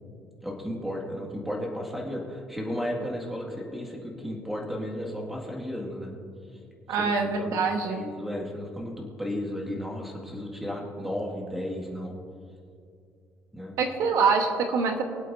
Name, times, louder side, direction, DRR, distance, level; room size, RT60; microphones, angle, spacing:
voice 1, 0.4-6.1 7.0-7.6 7.9-12.1 13.5-13.8, equal, 5° right, -2 dB, 1.9 m, -34 dB
voice 2, 6.9-8.0 13.8-15.0, right 5 dB, 70° right, 4 dB, 1.1 m, -25 dB
24.0 x 8.3 x 2.6 m, 2.4 s
cardioid pair, 165°, 6 cm